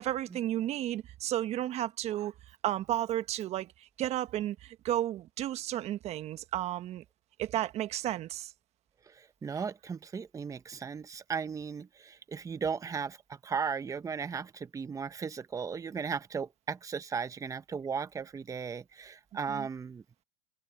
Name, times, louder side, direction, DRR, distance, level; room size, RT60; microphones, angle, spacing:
voice 1, 0.0-2.3 2.6-7.0 7.4-8.5 19.5-19.7, right 13 dB, 45° right, 1.3 m, -33 dB
voice 2, 9.1-13.2 13.4-20.0, right 6 dB, 20° right, 1.4 m, -36 dB
hypercardioid pair, 100°, 15 cm